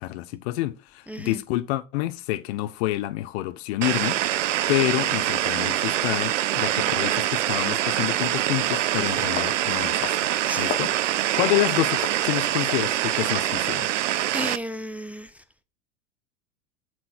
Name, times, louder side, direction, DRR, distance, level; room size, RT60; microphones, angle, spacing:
voice 1, 0.0-10.3 10.6-13.9, left 16 dB, 60° left, 0.9 m, -28 dB
voice 2, 1.1-1.4 10.5-10.8 14.3-15.4, equal, 5° right, 0.7 m, -33 dB
sound 1, 3.8-14.6, right 13 dB, 75° right, 0.7 m, -24 dB
sound 2, 5.8-5.9 6.9-7.0 7.5-7.7 8.1-8.3 8.7-8.9 9.4-9.6 10.0-10.2 10.5-10.9 11.4-11.5 12.0-12.3 12.7-12.9, left 11 dB, 35° left, 1.1 m, -34 dB
7.6 x 6.2 x 4.5 m
hypercardioid pair, 90°, 37 cm